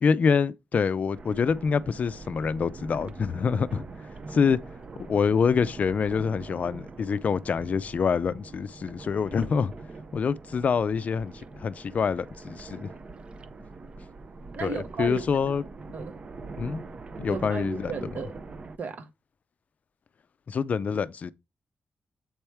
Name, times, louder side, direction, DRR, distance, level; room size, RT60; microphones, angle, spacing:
voice 1, 0.0-3.8 4.3-4.6 5.0-9.7 10.1-12.9 14.6-15.6 16.6-16.8 17.2-17.9 20.5-21.3, left 6 dB, 45° left, 0.4 m, -26 dB
sound 1, 1.1-18.8, right 3 dB, 35° right, 0.5 m, -43 dB
voice 2, 14.5-15.3 15.9-16.2 17.3-18.4 18.8-19.1, right 4 dB, 55° right, 1.0 m, -34 dB
7.9 x 4.4 x 3.4 m
wide cardioid pair, 175°, 3 cm